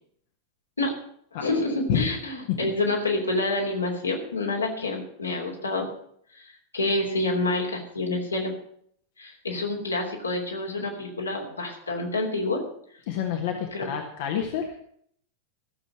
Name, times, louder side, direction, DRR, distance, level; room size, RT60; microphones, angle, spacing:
voice 1, 1.4-5.9 6.7-8.5 9.2-12.6 13.7-13.9, left 2 dB, 75° left, 0 dB, 3.2 m, -28 dB
voice 2, 13.1-14.7, left 8 dB, 50° left, 3 dB, 1.6 m, -28 dB
15.0 x 7.1 x 8.0 m, 0.65 s
figure-of-eight pair, 90°, 0 cm